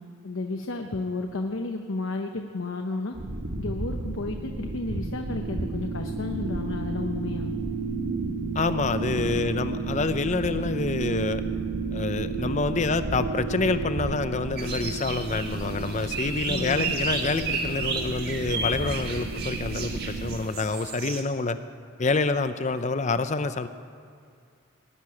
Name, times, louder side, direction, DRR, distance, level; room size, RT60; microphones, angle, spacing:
voice 1, 0.2-3.1 3.6-7.5 16.5-16.9, left 3 dB, 70° left, 4 dB, 0.8 m, -32 dB
sound 1, 3.1-20.4, right 3 dB, 80° right, 1.2 m, -32 dB
voice 2, 8.5-11.4 11.9-21.6 22.0-23.7, left 3 dB, 35° left, 11 dB, 0.5 m, -27 dB
sound 2, 14.6-21.2, right 4 dB, 50° right, 1.6 m, -33 dB
19.5 x 6.8 x 9.7 m, 2.3 s
head